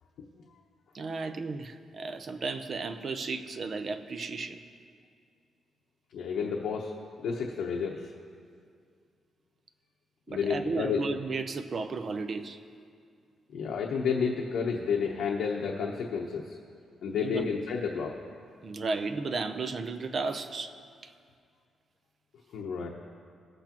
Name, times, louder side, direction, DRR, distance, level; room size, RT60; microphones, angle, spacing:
voice 1, 0.9-4.6 10.3-12.6 17.1-17.5 18.6-20.7 21.0-21.1, right 4 dB, 40° right, 8 dB, 0.6 m, -34 dB
voice 2, 6.1-6.9 7.2-8.0 10.3-11.0 13.5-16.6 17.0-18.2 22.5-22.9, left 6 dB, 75° left, -1 dB, 0.9 m, -30 dB
20.0 x 8.1 x 3.0 m, 2.3 s
wide cardioid pair, 160°, 0 cm